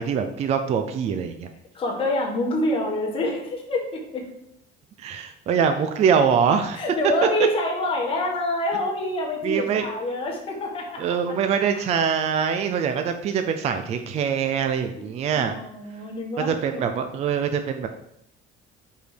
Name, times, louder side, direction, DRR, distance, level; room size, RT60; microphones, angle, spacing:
voice 1, 0.0-1.5 5.0-6.8 9.4-9.9 11.0-15.6 16.4-17.9, right 7 dB, 30° right, 7 dB, 0.4 m, -23 dB
voice 2, 1.7-4.3 6.8-11.1 11.7-11.8 12.7-12.8 15.0-16.9, left 1 dB, 25° left, -2 dB, 1.5 m, -27 dB
5.1 x 4.6 x 5.0 m, 0.77 s
cardioid pair, 170°, 20 cm